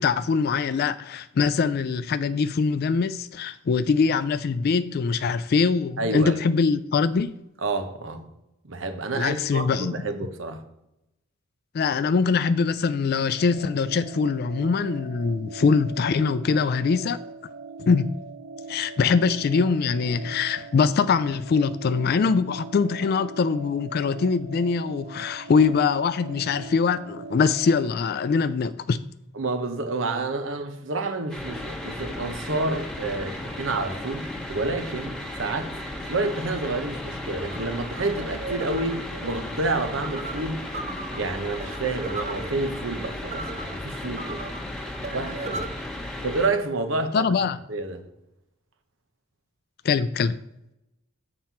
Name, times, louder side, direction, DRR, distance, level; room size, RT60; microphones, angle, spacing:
voice 1, 0.0-7.3 9.1-10.0 11.7-17.2 17.8-18.2 18.7-29.0 47.1-47.6 49.8-50.4, left 5 dB, 50° left, 0.3 m, -23 dB
voice 2, 6.0-6.4 7.6-8.3 8.6-10.6 29.3-35.7 36.1-40.6 41.1-44.4 45.1-45.7 46.0-47.3 47.7-48.0, right 2 dB, 70° right, 1.0 m, -29 dB
sound 1, 13.4-27.9, right 3 dB, 90° right, 2.2 m, -41 dB
sound 2, 31.3-46.5, left 1 dB, 5° left, 1.2 m, -35 dB
sound 3, 37.5-45.7, right 3 dB, 35° right, 0.7 m, -38 dB
7.6 x 4.3 x 5.6 m
head